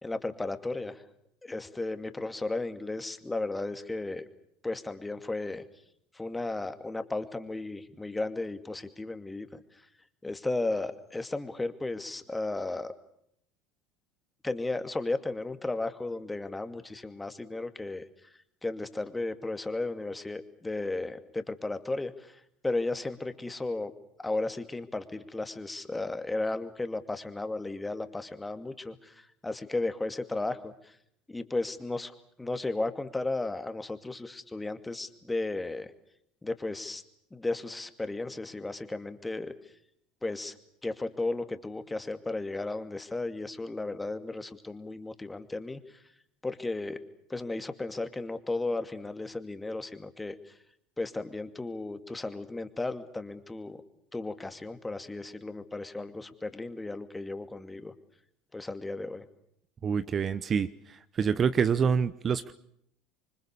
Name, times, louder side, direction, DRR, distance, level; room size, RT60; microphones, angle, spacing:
voice 1, 0.0-1.0 1.4-4.2 4.6-5.6 6.1-9.6 10.2-12.9 14.4-18.0 18.6-23.9 24.2-30.9 31.3-32.1 32.4-35.9 36.4-37.0 37.3-39.5 40.2-40.5 40.8-45.8 46.4-47.0 47.3-50.4 51.0-53.8 54.1-57.9 58.5-59.2, left 2 dB, 10° left, 9 dB, 2.4 m, -34 dB
voice 2, 59.8-60.7 61.2-62.5, right 6 dB, 35° right, 14 dB, 1.0 m, -26 dB
27.5 x 24.5 x 6.9 m, 0.72 s
hypercardioid pair, 75°, 0 cm